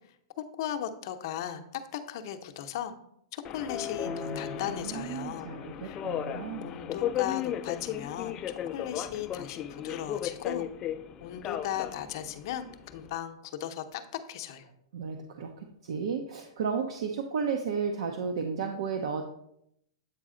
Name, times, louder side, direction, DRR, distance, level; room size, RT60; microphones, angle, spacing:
voice 1, 0.6-2.9 3.3-5.5 5.8-6.0 6.6-10.7 11.2-14.0 14.3-14.7, left 10 dB, 55° left, 7 dB, 0.6 m, -37 dB
Subway metro underground, 3.4-13.2, left 10 dB, 25° left, 0.3 m, -36 dB
voice 2, 4.0-6.8 14.9-19.3, right 6 dB, 70° right, 5 dB, 0.7 m, -34 dB
8.2 x 4.1 x 3.7 m, 0.74 s
hypercardioid pair, 145°, 3 cm